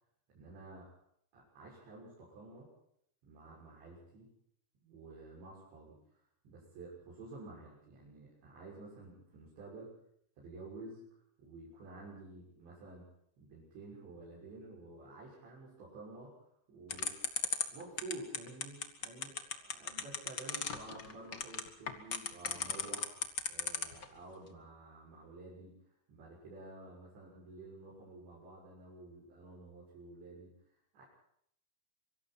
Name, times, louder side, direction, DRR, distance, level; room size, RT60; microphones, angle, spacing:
voice 1, 0.3-0.9 1.3-2.7 3.2-4.3 4.8-10.0 10.4-13.1 13.4-16.3 16.7-17.2 17.7-25.8 26.1-30.5 30.9-31.0, right 2 dB, 80° right, -5 dB, 8.9 m, -51 dB
sound 1, 16.9-24.0, left 5 dB, 40° left, 1.6 m, -35 dB
26.0 x 24.5 x 4.4 m, 0.70 s
omnidirectional pair, 5.1 m